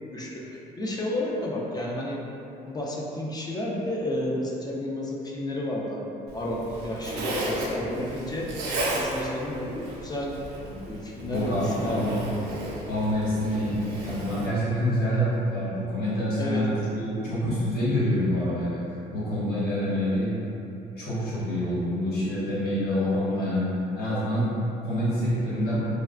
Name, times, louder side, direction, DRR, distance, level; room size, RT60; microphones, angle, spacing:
voice 1, 0.1-2.2 2.7-8.5 8.9-10.4 10.9-12.2 16.4-16.7, left 1 dB, 25° left, -3 dB, 0.3 m, -31 dB
Zipper (clothing), 6.3-14.5, right 1 dB, 80° right, 0.6 m, -34 dB
voice 2, 11.3-12.2 12.9-13.7 14.0-20.3 21.0-25.8, equal, 70° left, -9 dB, 1.1 m, -27 dB
3.2 x 2.2 x 2.4 m, 2.9 s
cardioid pair, 110°, 17 cm